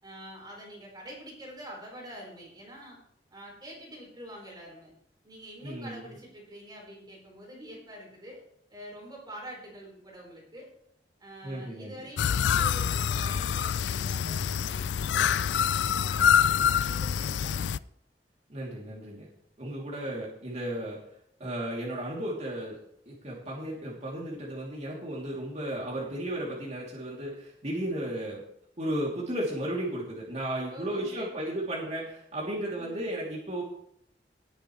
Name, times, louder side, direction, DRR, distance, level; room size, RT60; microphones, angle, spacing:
voice 1, 0.0-3.0 3.3-4.9 5.2-8.4 8.7-10.7 11.2-16.5 16.8-17.8 30.7-31.7 32.7-33.1, equal, 25° right, -2 dB, 4.7 m, -46 dB
voice 2, 5.6-6.1 11.4-12.1 18.5-19.3 19.6-21.0 21.4-22.8 23.1-28.4 28.8-33.6, right 1 dB, 40° right, -4 dB, 3.1 m, -34 dB
sound 1, 12.2-17.8, left 8 dB, 80° left, 0.4 m, -26 dB
19.5 x 8.8 x 3.3 m, 0.70 s
head